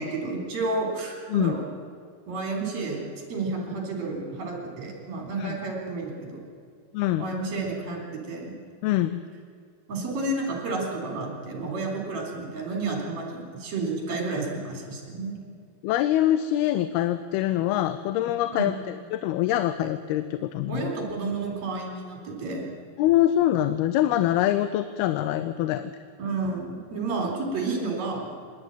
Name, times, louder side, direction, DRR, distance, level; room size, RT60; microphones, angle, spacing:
voice 1, 0.0-1.6 2.3-6.4 7.2-8.5 9.9-15.4 18.5-18.7 20.7-22.7 26.2-28.3, right 3 dB, 45° right, 1 dB, 4.8 m, -31 dB
voice 2, 6.9-7.3 8.8-9.2 15.8-20.9 23.0-25.9, left 13 dB, 85° left, 12 dB, 2.6 m, -24 dB
26.0 x 11.5 x 9.1 m, 2.2 s
omnidirectional pair, 4.4 m